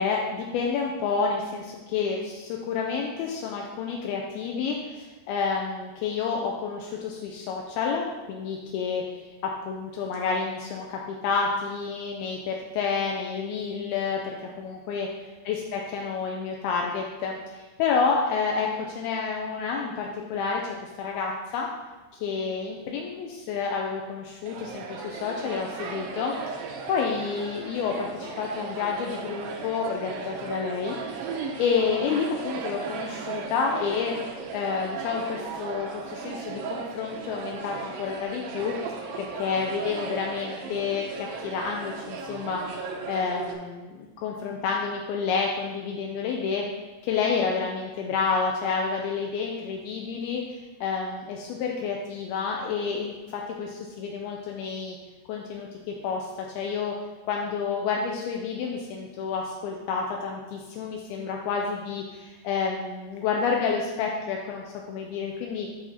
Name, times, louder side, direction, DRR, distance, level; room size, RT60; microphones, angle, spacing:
voice 1, 0.0-9.2 9.7-15.1 15.5-21.7 22.1-31.0 31.6-34.2 34.5-38.8 39.2-42.6 43.1-46.7 47.0-50.4 50.8-55.0 55.3-56.9 57.3-65.7, left 5 dB, 85° left, 0 dB, 2.2 m, -29 dB
sound 1, 24.5-43.5, right 5 dB, 80° right, 2.0 m, -36 dB
10.5 x 4.3 x 4.1 m, 1.2 s
omnidirectional pair, 5.1 m